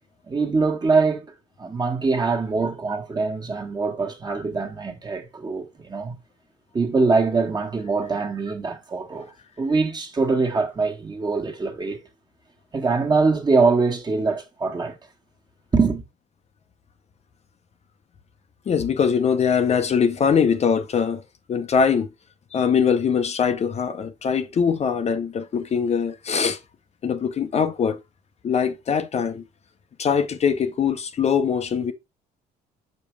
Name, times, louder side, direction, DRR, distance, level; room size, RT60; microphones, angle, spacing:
voice 1, 0.3-6.2 6.7-12.0 12.7-15.0 15.7-16.0, right 4 dB, 25° right, 1.6 m, -23 dB
voice 2, 18.7-21.2 21.5-22.1 22.5-26.6 27.0-28.0 28.4-29.4 30.0-31.9, left 6 dB, 40° left, 0.8 m, -22 dB
6.0 x 5.2 x 3.3 m
cardioid pair, 110°, 17 cm